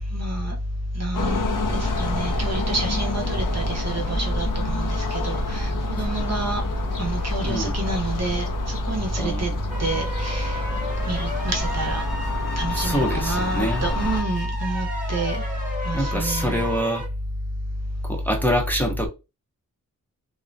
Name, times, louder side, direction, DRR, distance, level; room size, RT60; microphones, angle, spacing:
voice 1, 0.1-0.5 1.0-6.6 7.0-9.5 9.8-10.6 11.1-12.0 12.6-15.4 15.9-16.6, right 1 dB, 50° right, 0.7 m, -26 dB
sound 1, 1.1-14.2, left 2 dB, 65° left, 0.6 m, -29 dB
voice 2, 7.4-7.8 9.2-9.6 12.7-13.8 15.9-17.0 18.0-19.1, equal, 5° left, 0.6 m, -25 dB
sound 2, 9.7-17.1, left 1 dB, 25° right, 1.1 m, -33 dB
2.4 x 2.1 x 2.5 m
wide cardioid pair, 70°, 35 cm